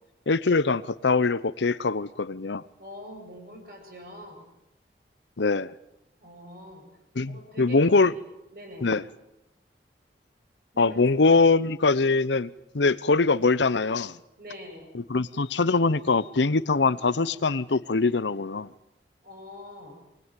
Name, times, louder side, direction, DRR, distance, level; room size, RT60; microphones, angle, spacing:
voice 1, 0.3-2.6 5.4-5.7 7.2-8.1 8.8-9.0 10.8-12.5 12.7-14.2 14.9-18.7, left 3 dB, 85° left, 0.8 m, -23 dB
voice 2, 2.8-4.4 6.2-6.8 7.3-7.8 8.5-8.9 10.7-11.3 14.4-14.9 19.2-20.0, equal, 55° right, 8.0 m, -44 dB
22.5 x 20.0 x 9.2 m
head